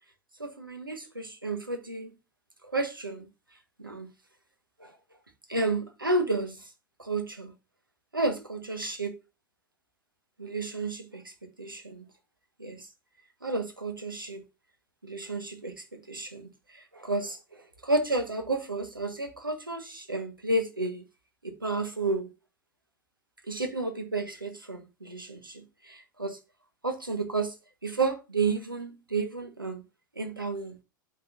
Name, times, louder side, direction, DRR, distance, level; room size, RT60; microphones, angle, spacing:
voice 1, 0.4-2.1 2.6-3.2 3.8-4.1 4.8-4.9 5.5-6.6 7.0-7.5 8.1-9.2 10.4-12.1 12.6-12.8 13.4-14.4 15.0-21.0 21.4-22.3 23.5-26.4 26.8-27.5 27.8-29.8 30.1-30.8, right 3 dB, 85° right, 1.5 m, -32 dB
12.0 x 4.2 x 2.7 m
figure-of-eight pair, 90°, 11 cm